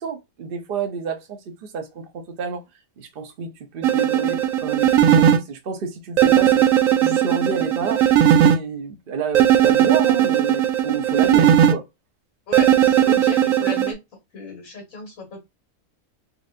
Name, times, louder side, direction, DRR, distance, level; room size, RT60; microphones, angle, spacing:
voice 1, 0.0-2.6 3.0-6.7 7.0-8.0 8.4-11.8, right 5 dB, 45° right, 0.9 m, -29 dB
sound 1, 3.8-5.4 6.2-8.6 9.3-11.7 12.5-13.9, right 10 dB, 75° right, 0.9 m, -17 dB
voice 2, 12.5-14.0 14.3-15.4, left 3 dB, 80° left, 1.8 m, -35 dB
4.3 x 2.6 x 2.4 m
omnidirectional pair, 1.5 m